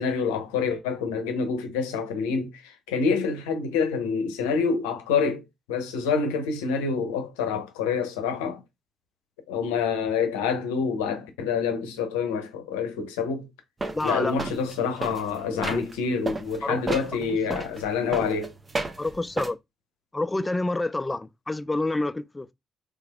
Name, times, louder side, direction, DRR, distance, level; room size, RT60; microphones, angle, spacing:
voice 1, 0.0-5.4 5.7-8.6 9.5-13.5 14.0-18.5, left 5 dB, 75° left, 0.7 m, -27 dB
sound 1, 13.8-16.0 16.3-19.5, right 2 dB, 30° right, 0.7 m, -33 dB
voice 2, 13.9-14.4 15.5-15.8 16.6-16.8 17.5-17.7 19.0-19.6 20.1-22.5, left 2 dB, 20° left, 0.3 m, -28 dB
3.3 x 3.3 x 2.2 m
figure-of-eight pair, 45°, 0 cm